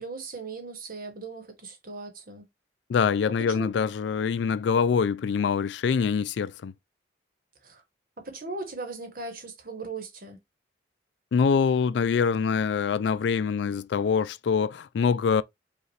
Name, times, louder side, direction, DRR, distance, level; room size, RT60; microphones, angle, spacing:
voice 1, 0.0-2.5 3.5-3.7 7.6-7.8 8.2-10.4, right 3 dB, 50° right, 1.2 m, -38 dB
voice 2, 2.9-6.7 11.3-15.4, left 6 dB, 70° left, 0.3 m, -24 dB
5.2 x 2.5 x 3.1 m
head